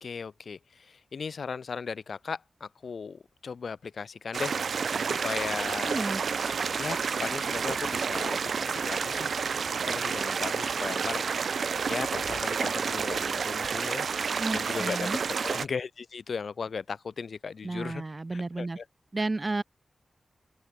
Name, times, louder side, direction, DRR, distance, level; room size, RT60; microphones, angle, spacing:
voice 1, 0.0-4.6 5.1-6.0 6.8-9.3 9.8-11.2 11.9-14.1 14.5-15.1 15.4-18.0 18.3-18.8, left 5 dB, 75° left, 0.8 m, -37 dB
sound 1, 4.3-15.7, right 6 dB, 80° right, 1.3 m, -30 dB
voice 2, 5.9-6.2 14.4-15.2 17.6-18.8 19.1-19.6, right 2 dB, 30° right, 3.7 m, -32 dB
open air
wide cardioid pair, 95°, 0 cm